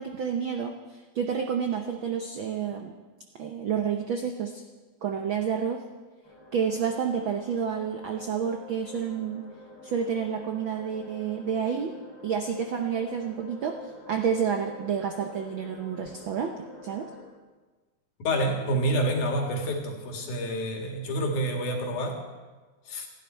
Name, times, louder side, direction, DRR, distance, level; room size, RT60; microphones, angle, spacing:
voice 1, 0.0-2.9 3.4-4.6 5.0-5.8 6.5-9.4 9.8-11.9 12.2-13.8 14.1-17.1, right 7 dB, 75° right, 4 dB, 1.1 m, -29 dB
sound 1, 6.2-17.2, left 2 dB, 45° left, 6.4 m, -47 dB
voice 2, 18.2-22.2 22.9-23.1, right 1 dB, 85° left, 2 dB, 3.6 m, -28 dB
28.0 x 10.5 x 4.5 m, 1.3 s
omnidirectional pair, 3.4 m